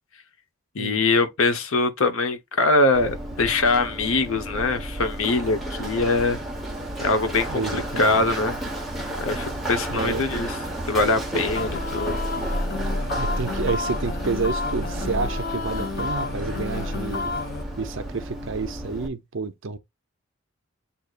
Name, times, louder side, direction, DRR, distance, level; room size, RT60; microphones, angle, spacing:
voice 1, 0.7-6.4 7.0-8.5 9.2-10.5 10.9-12.2, left 3 dB, 70° left, 0.8 m, -23 dB
Run, 2.9-19.1, right 1 dB, ahead, 1.0 m, -31 dB
voice 2, 7.5-8.3 9.9-10.3 13.2-17.3 17.8-19.8, right 4 dB, 60° right, 0.6 m, -29 dB
sound 1, 11.6-17.6, left 4 dB, 45° left, 0.5 m, -31 dB
7.9 x 2.8 x 2.4 m
head